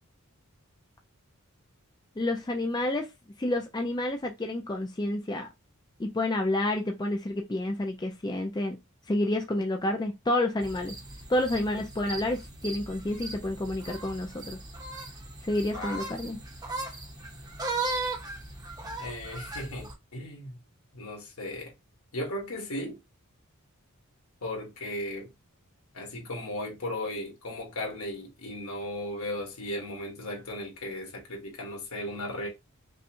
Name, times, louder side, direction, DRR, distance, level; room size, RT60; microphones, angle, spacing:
voice 1, 2.2-3.1 3.4-5.5 6.0-8.8 9.1-11.0 11.3-14.6 15.4-16.4, left 1 dB, 20° left, 0.4 m, -29 dB
sound 1, 10.6-19.9, right 3 dB, 15° right, 0.8 m, -37 dB
voice 2, 15.7-16.3 19.0-20.6 20.9-21.7 22.1-23.0 24.4-25.3 25.9-32.5, left 1 dB, 75° left, 1.7 m, -36 dB
5.4 x 2.2 x 2.7 m
head